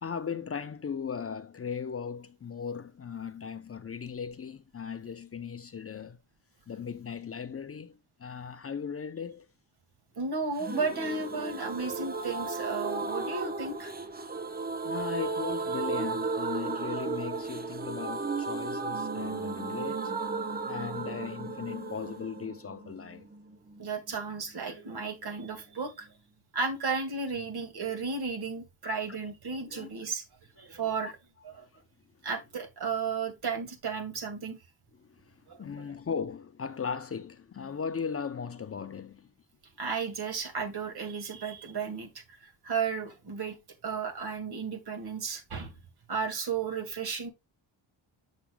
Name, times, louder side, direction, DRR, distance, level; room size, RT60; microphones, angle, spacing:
voice 1, 0.0-6.2 6.7-9.5 14.8-20.1 20.7-23.3 29.1-29.2 29.6-29.9 31.5-31.8 35.0-39.3, left 6 dB, 30° left, 0.6 m, -38 dB
voice 2, 10.2-13.9 23.8-26.1 26.5-30.2 30.6-31.2 31.4-31.7 32.2-34.6 35.5-35.9 39.8-43.6 43.8-45.7 46.1-47.3, right 5 dB, 55° right, 2.1 m, -34 dB
sound 1, 10.6-24.2 24.4-24.5 24.8-24.9, right 4 dB, 20° right, 0.8 m, -35 dB
7.2 x 6.8 x 2.2 m
cardioid pair, 85°, 47 cm